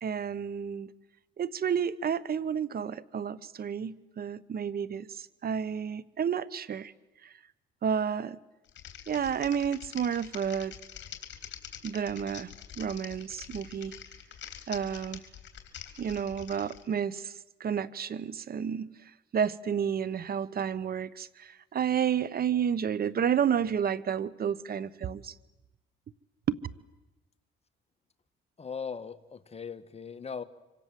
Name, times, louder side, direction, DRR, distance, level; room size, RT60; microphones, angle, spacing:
voice 1, 0.0-0.9 1.4-6.9 7.2-7.3 7.8-8.4 9.1-10.7 11.8-12.5 12.8-14.0 14.7-15.2 16.0-17.3 17.6-18.9 19.3-25.3 26.5-26.6, right 8 dB, 50° right, 19 dB, 1.1 m, -31 dB
Typing, 8.7-16.8, left 9 dB, 65° left, 3.5 m, -45 dB
voice 2, 28.6-30.4, left 6 dB, 30° left, 9 dB, 1.6 m, -39 dB
25.5 x 25.5 x 7.7 m, 0.98 s
cardioid pair, 90°, 20 cm